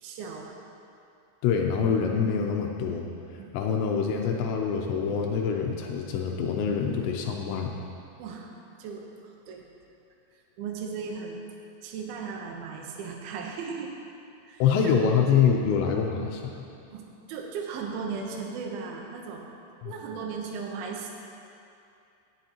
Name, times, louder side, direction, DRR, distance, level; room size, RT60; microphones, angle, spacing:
voice 1, 0.0-0.6 3.4-3.6 7.0-7.6 8.2-8.5 8.8-9.1 9.5-9.7 10.6-11.4 11.8-13.9 14.5-14.6 14.9-15.0 16.9-17.0 17.3-19.4 19.8-21.1, right 5 dB, 85° right, 0 dB, 2.1 m, -36 dB
voice 2, 1.4-3.1 3.5-7.7 14.6-16.6 19.8-19.9, left 6 dB, 85° left, 1 dB, 2.6 m, -25 dB
17.0 x 7.8 x 2.9 m, 2.6 s
omnidirectional pair, 5.8 m